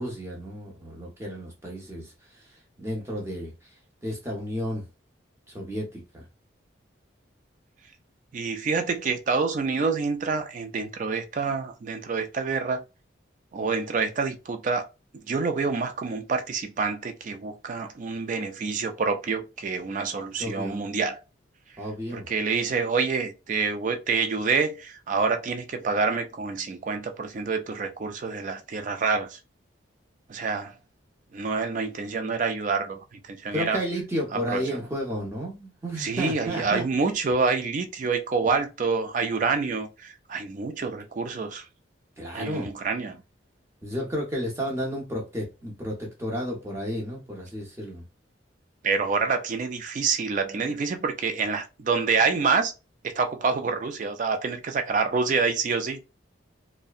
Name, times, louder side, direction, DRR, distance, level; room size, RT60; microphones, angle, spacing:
voice 1, 0.0-2.1 2.8-3.5 4.0-4.8 5.5-6.2 20.4-20.9 21.8-22.3 33.5-36.8 42.2-42.7 43.8-48.0, equal, 15° right, 0.7 m, -32 dB
voice 2, 8.3-12.8 13.5-14.9 15.3-21.2 22.1-29.4 30.3-30.7 31.3-33.8 34.3-34.6 36.0-41.7 42.3-43.2 48.8-52.7 53.0-56.0, right 4 dB, 40° right, 0.3 m, -27 dB
2.6 x 2.1 x 2.3 m
head